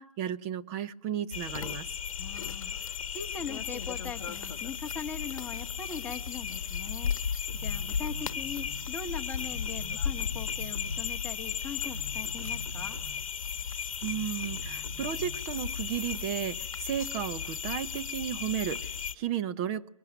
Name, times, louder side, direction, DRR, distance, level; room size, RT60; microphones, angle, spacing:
voice 1, 0.0-1.9 14.0-19.9, right 10 dB, 25° right, 11 dB, 1.0 m, -34 dB
sound 1, 1.3-19.1, left 7 dB, 65° left, 1.1 m, -35 dB
voice 2, 2.2-13.0, left 6 dB, 10° left, 2 dB, 1.9 m, -41 dB
sound 2, 7.5-9.0 9.4-11.2 11.7-13.4 14.0-15.5, right 2 dB, 90° right, 3.2 m, -46 dB
23.0 x 22.0 x 9.3 m, 0.74 s
hypercardioid pair, 145°, 18 cm